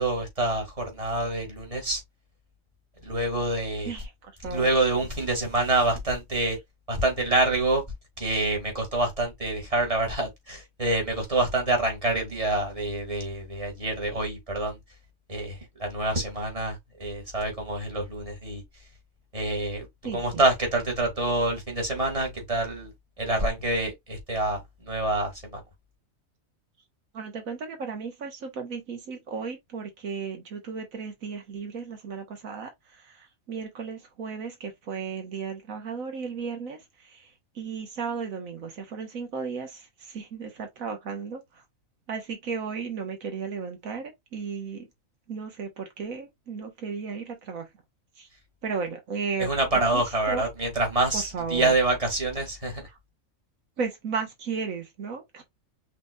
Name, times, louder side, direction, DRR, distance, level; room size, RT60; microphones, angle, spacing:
voice 1, 0.0-2.0 3.0-3.9 4.5-6.6 6.9-7.8 8.2-14.7 15.3-18.6 19.3-19.9 20.1-22.9 23.2-25.6 49.4-52.8, right 2 dB, 25° right, 2.1 m, -26 dB
voice 2, 3.8-4.7 20.0-20.4 27.1-41.6 42.1-44.9 45.3-47.7 48.2-48.3 48.6-49.5 49.9-50.5 51.1-51.8 52.9-53.0 53.8-55.4, right 5 dB, 80° right, 1.6 m, -35 dB
5.8 x 3.4 x 2.3 m
omnidirectional pair, 1.4 m